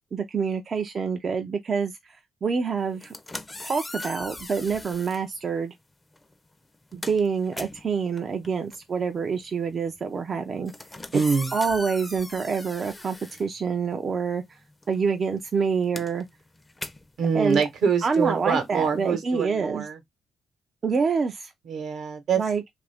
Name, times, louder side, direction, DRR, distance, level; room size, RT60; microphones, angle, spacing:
voice 1, 0.1-3.1 3.6-5.7 6.9-10.7 11.1-11.2 11.5-14.6 14.9-16.3 17.3-17.7 18.0-19.9 20.8-21.5 22.4-22.7, right 5 dB, 45° right, 0.4 m, -27 dB
sound 1, 2.9-5.3 6.1-6.3 6.6-14.2 14.4-19.1, left 2 dB, 15° left, 0.5 m, -40 dB
voice 2, 11.1-11.5 17.2-20.0 21.7-22.4, right 6 dB, 70° right, 0.9 m, -25 dB
2.6 x 2.4 x 3.3 m
cardioid pair, 90°, 0 cm